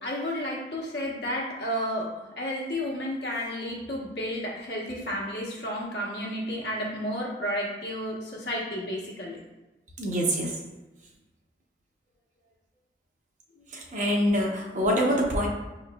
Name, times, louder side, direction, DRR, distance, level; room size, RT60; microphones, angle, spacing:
voice 1, 0.0-9.4, equal, 70° left, -4 dB, 1.1 m, -32 dB
voice 2, 10.0-10.5 13.7-15.5, equal, 45° right, -2 dB, 0.8 m, -25 dB
5.9 x 3.1 x 2.3 m, 1.1 s
head